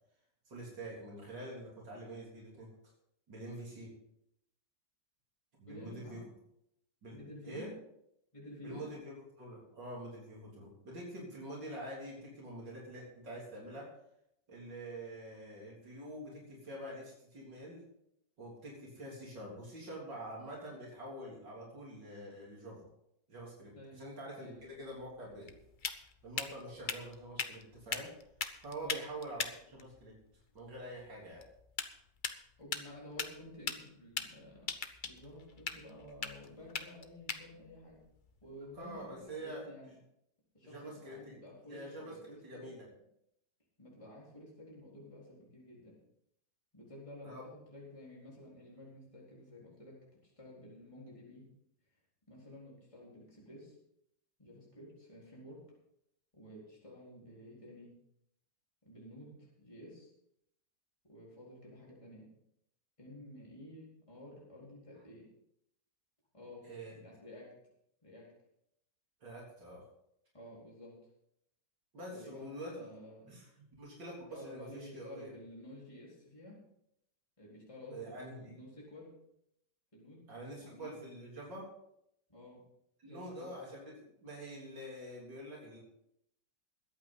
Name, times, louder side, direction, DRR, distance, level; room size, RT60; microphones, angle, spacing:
voice 1, 0.5-2.7 3.3-3.9 5.6-6.2 7.0-7.2 7.4-7.7 8.6-13.9 14.5-17.8 18.4-22.9 23.3-25.5 26.2-28.1 28.6-30.2 30.5-31.5 38.8-39.6 40.6-41.4 41.7-42.2 42.4-42.9 47.2-47.4 66.6-66.9 69.2-69.8 71.9-72.9 73.3-73.5 73.8-75.3 77.9-78.6 80.3-81.7 83.0-85.8, right 1 dB, 80° right, -4 dB, 4.1 m, -46 dB
voice 2, 5.7-6.2 7.1-7.7 8.3-8.8 23.7-24.0 24.4-24.8 28.8-29.0 32.6-34.7 35.0-38.0 38.4-39.9 40.5-42.7 43.8-46.0 46.7-50.0 50.2-51.5 52.3-53.8 54.4-55.6 56.3-57.9 58.8-60.1 61.0-62.3 63.0-65.3 66.3-66.7 66.9-67.5 68.0-68.3 70.3-70.9 72.1-73.3 74.3-76.6 77.4-79.1 79.9-80.3 80.6-81.0 82.3-82.6 83.0-83.5, left 1 dB, 15° left, -5 dB, 4.1 m, -51 dB
sound 1, 24.6-39.3, left 5 dB, 40° left, 0.7 m, -43 dB
21.5 x 8.7 x 3.9 m, 0.78 s
omnidirectional pair, 1.9 m